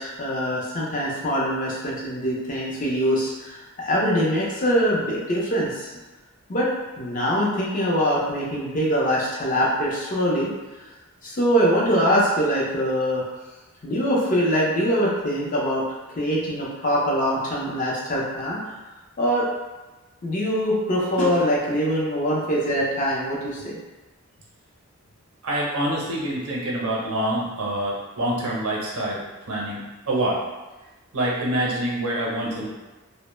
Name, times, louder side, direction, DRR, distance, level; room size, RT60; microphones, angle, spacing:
voice 1, 0.0-5.9 6.5-6.7 7.0-10.5 11.2-13.3 13.8-15.8 16.2-18.6 19.2-19.5 20.2-23.7, equal, 35° left, -4 dB, 0.5 m, -23 dB
voice 2, 25.4-30.4 31.1-32.7, right 1 dB, 75° right, -3 dB, 0.7 m, -26 dB
2.1 x 2.0 x 3.0 m, 1.2 s
head